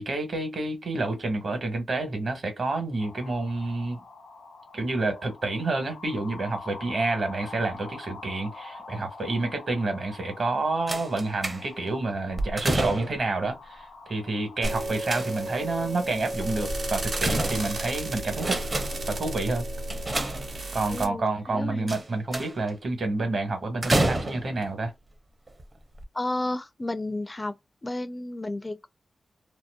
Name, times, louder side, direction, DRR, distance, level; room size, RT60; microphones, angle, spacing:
voice 1, 0.0-4.0 4.7-18.6 19.1-19.6 20.7-24.9, right 2 dB, 60° right, 1.2 m, -29 dB
sound 1, 3.0-16.2, left 3 dB, 85° left, 1.0 m, -46 dB
sound 2, 10.9-11.9 12.3-13.3 14.6-15.6 16.7-17.9 18.3-19.1 19.9-20.9 21.9-22.7 23.8-24.7 25.5-25.6 26.0-26.1, right 2 dB, 35° right, 0.6 m, -29 dB
sound 3, 14.6-21.1, right 1 dB, 85° right, 1.1 m, -32 dB
voice 2, 20.9-21.9 26.1-27.5 27.8-28.9, left 2 dB, 25° left, 0.4 m, -32 dB
2.7 x 2.1 x 2.3 m
cardioid pair, 70°, 0 cm